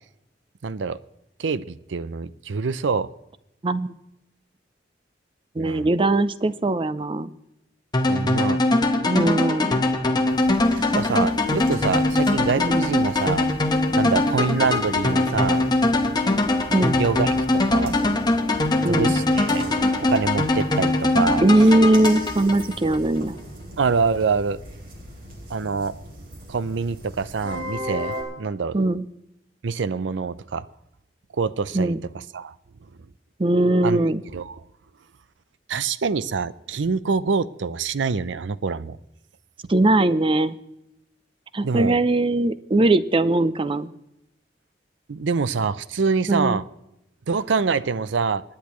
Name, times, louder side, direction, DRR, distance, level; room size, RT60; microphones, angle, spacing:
voice 1, 0.6-1.0 1.4-3.1 5.6-5.9 8.1-8.6 10.7-13.5 13.9-15.6 16.9-17.3 17.7-18.0 18.9-19.6 20.1-21.4 23.8-24.6 25.5-25.9 26.5-28.8 29.6-30.6 31.4-31.9 32.3-32.5 33.8-34.0 34.3-34.6 35.7-39.0 41.6-42.0 45.1-46.6 47.3-48.4, right 5 dB, 85° right, 17 dB, 0.5 m, -25 dB
voice 2, 3.6-3.9 5.6-7.3 9.1-9.7 12.6-13.0 16.7-17.0 18.8-19.1 21.4-23.3 28.7-29.0 31.7-32.0 33.4-34.2 39.7-40.6 41.5-43.9 46.3-46.6, right 2 dB, 30° right, 15 dB, 0.5 m, -20 dB
sound 1, 7.9-23.0, left 2 dB, 25° left, 1.1 m, -22 dB
sound 2, 10.3-28.2, equal, 55° right, 3.1 m, -38 dB
24.5 x 10.5 x 3.1 m, 0.87 s
head